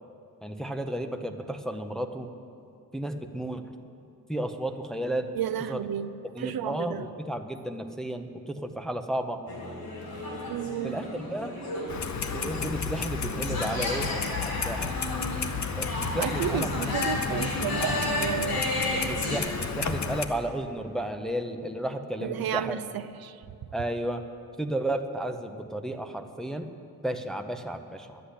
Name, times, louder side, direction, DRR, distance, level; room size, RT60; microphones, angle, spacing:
voice 1, 0.4-2.3 2.9-3.6 4.3-5.3 5.7-5.9 6.3-9.4 10.8-11.6 12.3-14.2 14.4-14.9 15.8-16.7 17.0-17.4 18.9-22.8 23.7-24.2 24.6-26.7 27.0-28.2, right 1 dB, ahead, 5 dB, 0.5 m, -33 dB
voice 2, 5.3-6.1 6.4-7.1 10.5-11.0 16.1-18.6 22.2-23.4, right 10 dB, 75° right, 12 dB, 0.5 m, -32 dB
sound 1, 9.5-19.4, left 1 dB, 85° left, 3.6 m, -33 dB
Clock, 11.9-20.3, left 5 dB, 50° left, 0.8 m, -32 dB
11.5 x 8.1 x 9.9 m, 2.5 s
wide cardioid pair, 160°, 36 cm